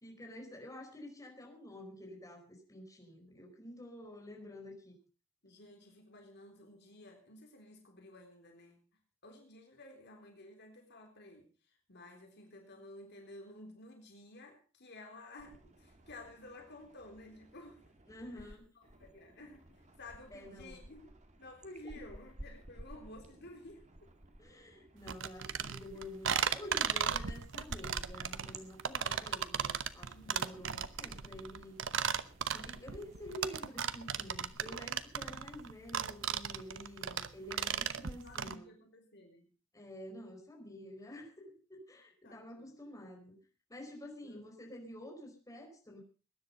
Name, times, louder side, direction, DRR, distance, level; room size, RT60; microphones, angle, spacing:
voice 1, 0.0-5.0 18.1-18.7 20.3-20.8 24.4-31.8 32.5-38.7 39.7-43.4 43.7-46.0, left 1 dB, 15° left, 0 dB, 4.7 m, -49 dB
voice 2, 5.4-8.8 9.2-11.5 11.9-17.8 18.4-18.6 18.8-21.1 21.4-24.1 30.1-30.5 38.1-39.5 42.2-42.8 44.2-44.4, left 1 dB, 55° left, 2 dB, 3.7 m, -53 dB
sound 1, 15.4-18.6 18.8-34.5, right 1 dB, 35° right, 2.2 m, -55 dB
sound 2, 25.1-38.5, right 8 dB, 65° right, 1.0 m, -36 dB
20.0 x 10.5 x 5.3 m, 0.36 s
head